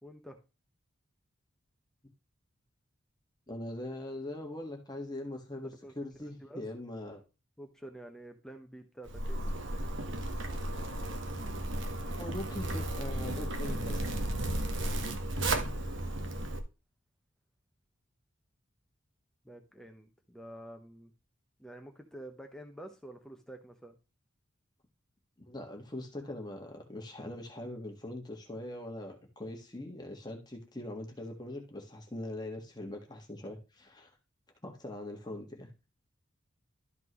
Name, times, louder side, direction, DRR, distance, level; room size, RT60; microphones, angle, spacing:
voice 1, 0.0-0.4 5.8-5.9 6.4-6.6 7.6-9.4 19.4-21.1 21.6-24.0, right 1 dB, 5° left, 4 dB, 0.9 m, -48 dB
voice 2, 3.5-7.2 12.2-14.1 25.5-34.1 34.6-35.7, left 1 dB, 20° left, 2 dB, 1.5 m, -42 dB
Zipper (clothing), 9.1-16.6, right 1 dB, 65° right, 1.3 m, -34 dB
12.5 x 5.9 x 3.1 m, 0.29 s
head